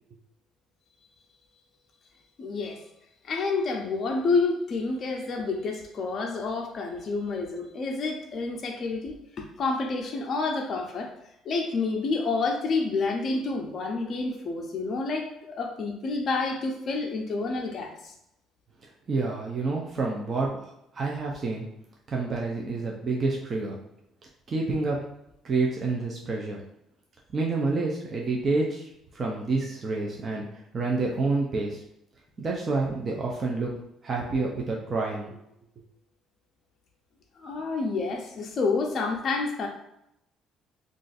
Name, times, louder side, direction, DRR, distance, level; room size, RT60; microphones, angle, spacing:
voice 1, 2.4-2.8 3.2-11.1 11.4-18.1 37.4-39.7, left 3 dB, 35° left, 0 dB, 0.5 m, -29 dB
voice 2, 19.1-20.5 20.9-21.7 22.1-23.8 24.5-25.0 25.4-26.6 27.3-31.8 32.4-33.7 34.0-35.4, right 3 dB, 30° right, -2 dB, 0.5 m, -28 dB
2.5 x 2.4 x 3.9 m, 0.81 s
cardioid pair, 155°, 0 cm